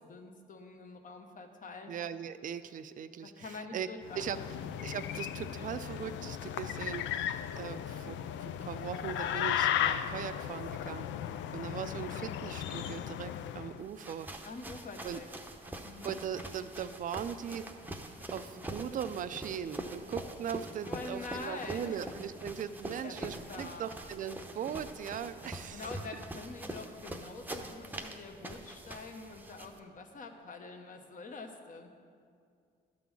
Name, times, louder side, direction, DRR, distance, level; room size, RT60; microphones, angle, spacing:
voice 1, 0.0-1.9 3.2-4.5 14.4-15.3 15.8-16.1 20.8-22.0 23.0-23.9 25.7-31.9, left 3 dB, 45° left, 5 dB, 1.0 m, -45 dB
voice 2, 1.9-3.9 4.2-4.4 4.8-11.1 11.5-14.3 15.0-15.2 16.0-17.7 18.3-25.8, right 8 dB, 45° right, 12 dB, 0.4 m, -39 dB
sound 1, 4.0-13.8, left 10 dB, 80° left, 0.4 m, -36 dB
sound 2, 13.8-29.8, right 1 dB, 10° right, 0.7 m, -44 dB
11.5 x 3.8 x 7.1 m, 2.3 s
cardioid pair, 90°, 19 cm